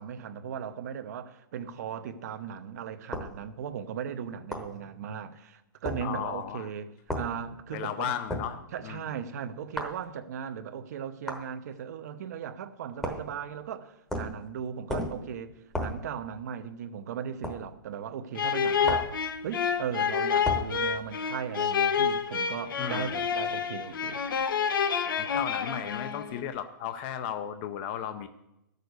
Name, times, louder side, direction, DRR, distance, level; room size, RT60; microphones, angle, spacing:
voice 1, 0.0-6.9 7.1-8.2 8.7-19.1 19.4-24.2, right 8 dB, 50° right, 0.9 m, -37 dB
sound 1, 3.1-3.3 4.5-4.7 5.8-6.0 7.1-7.3 8.3-8.5 9.8-10.0 11.3-11.5 13.0-13.3 14.1-14.4 14.9-15.2 15.7-16.0 17.4-17.6 18.8-19.2 20.4-20.7, left 1 dB, 5° left, 1.1 m, -33 dB
voice 2, 6.0-6.7 7.7-9.1 22.8-23.2 25.2-28.3, left 9 dB, 30° left, 0.6 m, -35 dB
sound 2, 18.3-26.4, left 7 dB, 80° left, 1.0 m, -28 dB
13.0 x 6.6 x 8.1 m
hypercardioid pair, 160°, 11 cm